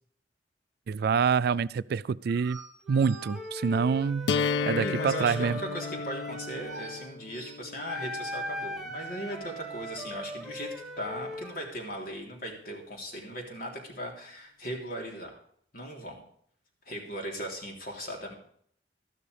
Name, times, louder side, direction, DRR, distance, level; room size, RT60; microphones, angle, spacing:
voice 1, 0.9-2.6 2.9-4.3 4.7-5.6, right 6 dB, 60° right, 19 dB, 0.3 m, -26 dB
sound 1, 2.3-5.5 6.6-7.6 8.3-9.1, right 4 dB, 80° right, 0.9 m, -46 dB
Wind instrument woodwind instrument, 2.8-7.1 7.9-11.8, equal, 5° right, 1.2 m, -39 dB
sound 2, 4.3-10.2, left 5 dB, 75° left, 0.4 m, -34 dB
voice 2, 4.7-15.4 15.7-16.2 16.8-18.3, equal, 55° left, 0 dB, 3.4 m, -38 dB
13.0 x 12.5 x 3.4 m, 0.63 s
head